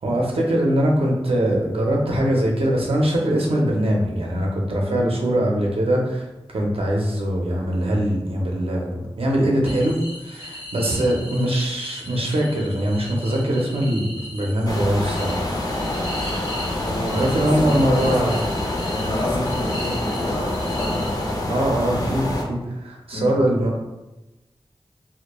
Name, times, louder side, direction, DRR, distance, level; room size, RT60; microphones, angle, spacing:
voice 1, 0.0-6.3 6.5-10.0 10.2-15.5 17.1-18.3 21.5-23.8, right 1 dB, 75° right, -1 dB, 0.5 m, -22 dB
voice 2, 4.8-5.1 16.9-18.6 18.9-21.4 23.1-23.3, left 1 dB, 65° left, -4 dB, 0.8 m, -30 dB
sound 1, 9.6-21.6, left 1 dB, 90° left, 0.9 m, -38 dB
sound 2, 14.7-22.4, left 1 dB, 40° left, 0.4 m, -26 dB
2.2 x 2.1 x 2.9 m, 1.0 s
wide cardioid pair, 70°, 10 cm